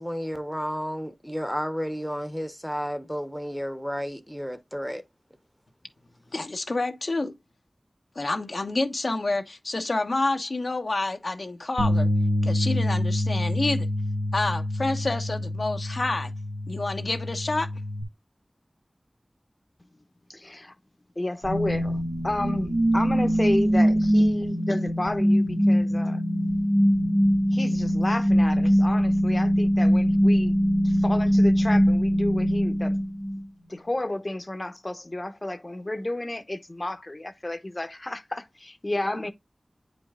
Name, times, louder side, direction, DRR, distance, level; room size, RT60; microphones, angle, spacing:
voice 1, 0.0-5.0, equal, ahead, 1.0 m, -32 dB
voice 2, 6.3-7.3 8.1-12.1 12.4-13.9 14.3-16.3 16.7-17.7, left 2 dB, 70° left, 1.1 m, -28 dB
sound 1, 11.8-18.0, left 1 dB, 90° right, 1.1 m, -27 dB
voice 3, 20.3-20.7 21.2-26.2 27.5-33.0 33.7-39.3, left 1 dB, 40° left, 1.0 m, -31 dB
sound 2, 21.4-33.4, equal, 45° right, 1.9 m, -22 dB
9.1 x 5.3 x 2.4 m
wide cardioid pair, 55°, 0 cm